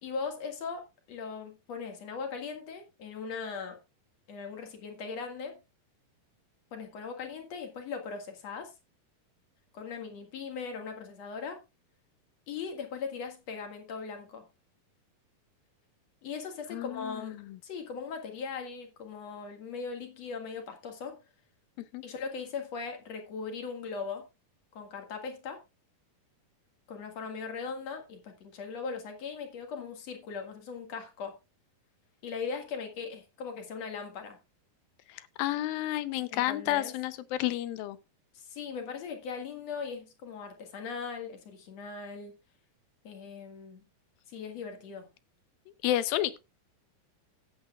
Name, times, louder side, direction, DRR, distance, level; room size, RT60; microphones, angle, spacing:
voice 1, 0.0-3.8 4.3-5.6 6.7-8.7 9.7-11.6 12.5-14.4 16.2-21.2 22.0-24.3 24.7-25.6 26.9-31.3 32.2-34.4 36.3-36.9 38.3-42.3 43.0-43.8 44.3-45.1, left 5 dB, 50° left, 2.7 m, -39 dB
voice 2, 16.7-17.6 21.8-22.0 35.1-38.0 45.8-46.4, left 14 dB, 80° left, 2.5 m, -31 dB
16.0 x 8.6 x 2.4 m
omnidirectional pair, 4.2 m